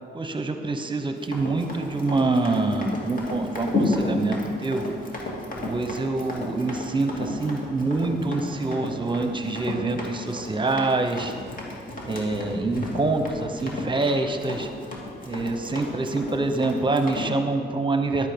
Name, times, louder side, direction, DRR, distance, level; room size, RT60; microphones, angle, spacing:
voice 1, 0.1-4.8 5.2-5.3 5.6-11.3 12.0-14.7 15.2-18.3, right 3 dB, 25° right, 7 dB, 0.9 m, -26 dB
Run, 1.2-17.3, left 2 dB, 50° left, 2.1 m, -32 dB
10.5 x 8.2 x 5.2 m, 2.2 s
cardioid pair, 90°, 19 cm